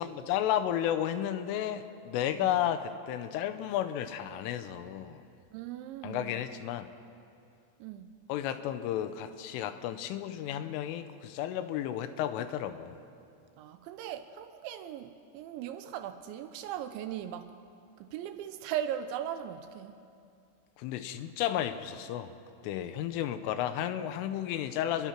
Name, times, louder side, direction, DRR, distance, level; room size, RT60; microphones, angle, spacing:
voice 1, 0.0-5.2 6.0-6.9 8.3-13.0 20.8-22.4 22.6-25.1, left 11 dB, 80° left, 10 dB, 3.4 m, -32 dB
voice 2, 5.5-6.4 7.8-8.1 13.6-17.5 18.0-19.9, right 10 dB, 80° right, 9 dB, 2.9 m, -38 dB
28.0 x 21.5 x 6.0 m, 2.5 s
omnidirectional pair, 5.8 m